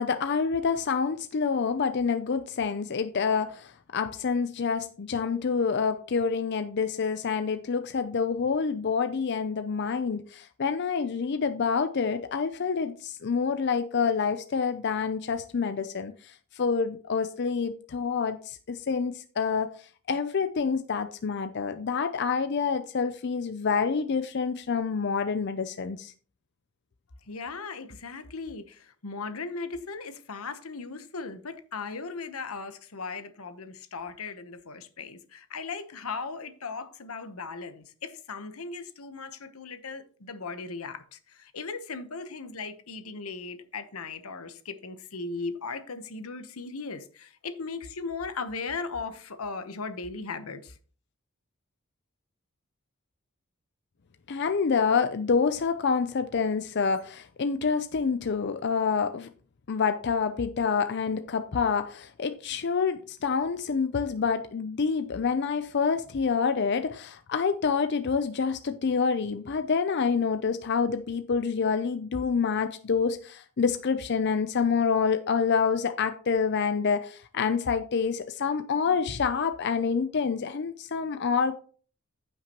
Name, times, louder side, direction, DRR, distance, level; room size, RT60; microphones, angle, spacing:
voice 1, 0.0-19.7 20.1-26.1 54.3-59.3 59.7-81.6, left 5 dB, 50° left, 0.5 m, -27 dB
voice 2, 27.3-50.7, left 4 dB, 85° left, 1.0 m, -37 dB
14.5 x 5.9 x 3.0 m
head